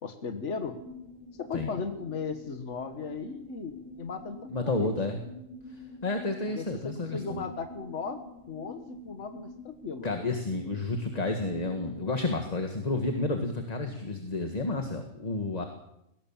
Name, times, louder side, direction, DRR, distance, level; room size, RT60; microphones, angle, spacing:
voice 1, 0.0-0.8 1.4-4.9 6.5-10.1, left 5 dB, 65° left, 7 dB, 1.7 m, -37 dB
sound 1, 0.5-12.0, left 1 dB, 35° right, 2.1 m, -47 dB
voice 2, 4.5-5.2 5.7-7.4 10.0-15.6, left 2 dB, 30° left, 5 dB, 1.8 m, -31 dB
20.0 x 18.0 x 7.3 m, 0.82 s
omnidirectional pair, 1.3 m